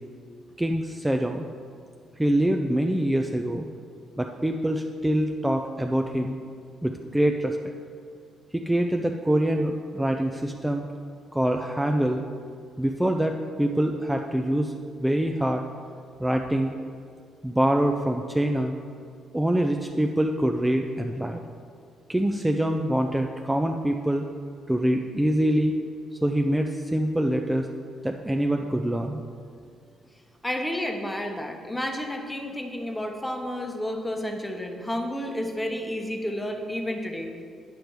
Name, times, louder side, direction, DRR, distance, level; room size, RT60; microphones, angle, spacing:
voice 1, 0.6-1.5 2.2-3.7 4.2-6.4 6.8-7.6 8.5-10.9 11.3-12.2 12.8-14.7 15.0-15.6 16.2-16.7 17.4-18.8 19.3-21.4 22.1-24.2 24.7-25.8 26.2-27.7 28.0-29.2, right 1 dB, 10° right, 3 dB, 0.4 m, -25 dB
voice 2, 30.4-37.4, left 1 dB, 10° left, 3 dB, 0.9 m, -31 dB
9.1 x 5.1 x 4.6 m, 2.2 s
cardioid pair, 90°, 0 cm